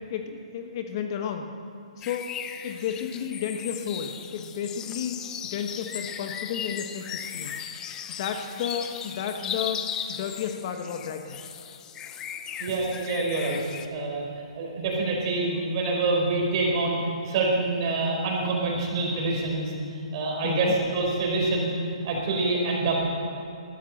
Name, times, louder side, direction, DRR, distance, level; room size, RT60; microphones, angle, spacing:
voice 1, 0.1-1.5 2.0-2.3 2.6-5.2 5.5-7.6 8.2-11.4 20.4-20.8, left 8 dB, 40° left, 5 dB, 1.1 m, -32 dB
sound 1, 2.0-13.9, left 8 dB, 15° left, 0.6 m, -37 dB
voice 2, 12.6-13.6 13.9-14.2 14.5-17.0 17.2-21.7 22.0-23.0, right 3 dB, 40° right, -1 dB, 4.4 m, -26 dB
13.0 x 13.0 x 7.9 m, 2.7 s
hypercardioid pair, 155°, 4 cm